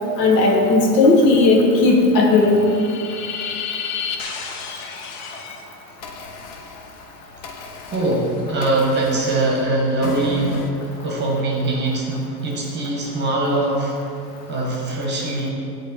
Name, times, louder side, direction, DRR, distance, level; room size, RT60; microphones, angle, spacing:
voice 1, 0.2-2.7, left 3 dB, 75° left, 0 dB, 1.3 m, -15 dB
sound 1, 2.4-5.6 6.0-10.7, left 5 dB, 40° left, 0.7 m, -32 dB
voice 2, 7.8-13.9 14.5-15.5, right 2 dB, 20° right, -2 dB, 1.1 m, -22 dB
8.2 x 3.3 x 4.0 m, 2.5 s
supercardioid pair, 125°, 49 cm